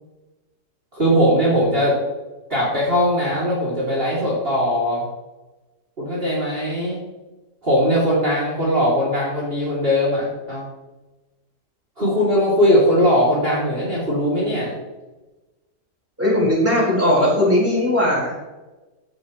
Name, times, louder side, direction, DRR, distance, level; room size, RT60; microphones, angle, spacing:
voice 1, 0.9-2.0 2.5-5.0 6.0-7.1 7.6-10.6 12.0-14.7, equal, 35° right, -7 dB, 3.0 m, -20 dB
voice 2, 16.2-18.3, left 1 dB, 10° right, -5 dB, 4.2 m, -18 dB
16.0 x 7.8 x 3.1 m, 1.1 s
omnidirectional pair, 1.8 m